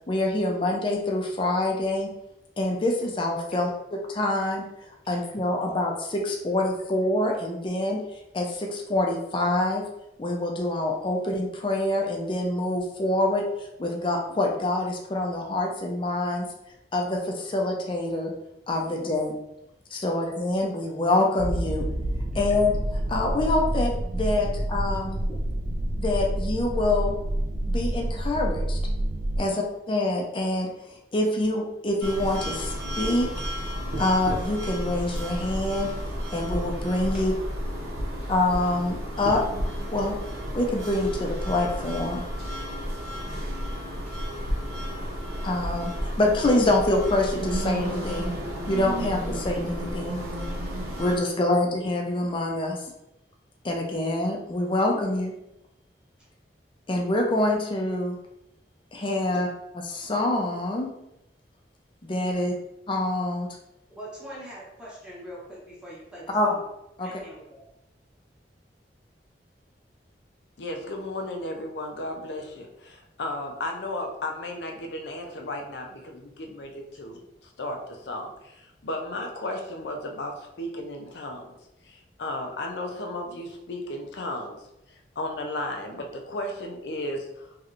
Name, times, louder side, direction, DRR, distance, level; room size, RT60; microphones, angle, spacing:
voice 1, 0.1-2.1 2.6-9.8 10.2-16.5 16.9-18.3 18.7-19.4 19.9-21.8 22.3-25.2 26.0-27.1 27.7-28.8 29.4-33.5 34.0-35.9 36.3-37.3 38.3-39.4 39.9-40.2 40.5-42.2 45.4-48.3 48.7-50.2 51.0-52.8 53.6-55.3 56.9-58.2 58.9-59.5 59.9-60.9 62.0-62.5 62.9-63.5 66.3-66.5 67.0-67.1, left 2 dB, 30° left, 0.5 m, -26 dB
sound 1, 21.4-29.4, right 1 dB, 45° right, 0.3 m, -28 dB
sound 2, 32.0-51.2, equal, 70° right, 0.8 m, -32 dB
voice 2, 63.9-66.6 67.0-67.6, equal, 5° right, 0.8 m, -43 dB
voice 3, 70.6-81.5 81.8-87.6, left 1 dB, 75° left, 0.6 m, -34 dB
3.1 x 2.9 x 2.5 m
head